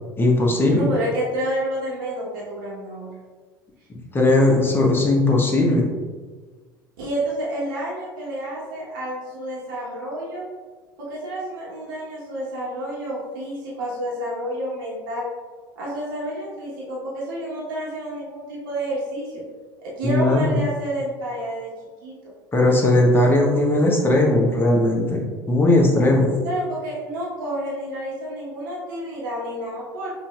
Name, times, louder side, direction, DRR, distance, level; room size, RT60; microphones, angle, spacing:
voice 1, 0.2-0.8 4.1-5.9 20.0-20.5 22.5-26.3, left 1 dB, 20° left, 0 dB, 0.9 m, -18 dB
voice 2, 0.8-3.1 7.0-10.5 11.0-15.3 15.8-19.4 19.8-21.7 22.0-22.1 26.4-30.1, right 1 dB, 70° right, -6 dB, 1.1 m, -29 dB
5.5 x 2.6 x 2.3 m, 1.4 s
hypercardioid pair, 70°, 11 cm